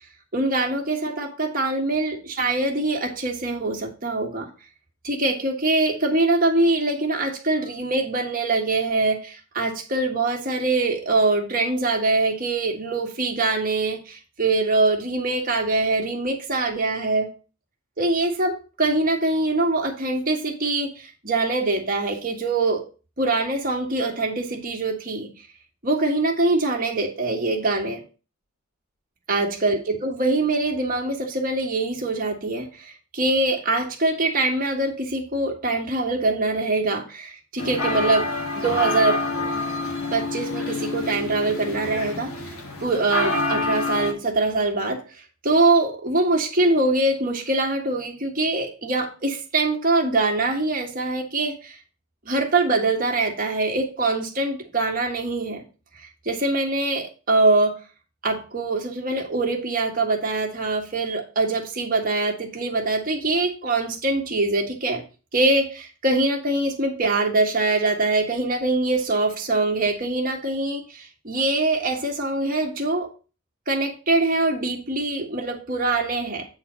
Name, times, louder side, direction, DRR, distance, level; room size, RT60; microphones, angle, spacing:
voice 1, 0.3-4.5 5.0-17.3 18.0-22.8 23.2-25.3 25.8-28.0 29.3-38.3 38.5-39.2 40.1-42.3 42.8-45.0 45.4-51.8 52.2-55.6 56.2-57.8 58.2-65.0 65.3-73.1 73.7-76.4, right 2 dB, 40° right, 2 dB, 1.5 m, -23 dB
sound 1, 37.6-44.1, left 3 dB, 70° left, 1.4 m, -27 dB
8.4 x 4.0 x 5.5 m, 0.34 s
head